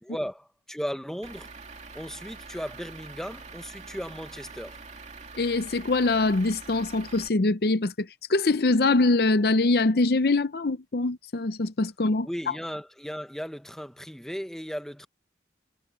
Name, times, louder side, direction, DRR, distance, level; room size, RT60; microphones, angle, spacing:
voice 1, 0.0-1.5 1.9-4.8 12.2-15.1, equal, 5° left, 1.0 m, -36 dB
Truck / Idling, 1.2-7.3, right 4 dB, 40° right, 2.4 m, -45 dB
voice 2, 5.3-12.3, left 3 dB, 55° left, 0.6 m, -23 dB
head